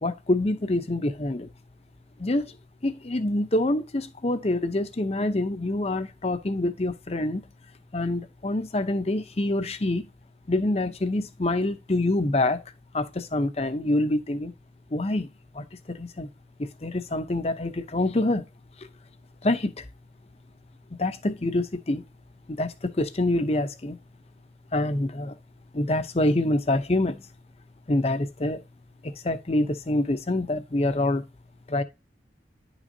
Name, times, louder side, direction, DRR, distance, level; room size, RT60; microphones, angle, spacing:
voice 1, 0.0-1.5 2.2-2.6 2.8-7.5 7.9-10.1 10.5-12.6 12.9-14.5 14.9-15.3 15.5-16.3 16.6-18.5 19.4-19.9 21.0-22.0 22.5-24.0 24.7-25.4 25.7-27.3 27.9-28.6 29.0-31.2 31.7-31.8, left 1 dB, 35° left, 0.7 m, -26 dB
10.5 x 6.0 x 2.7 m
head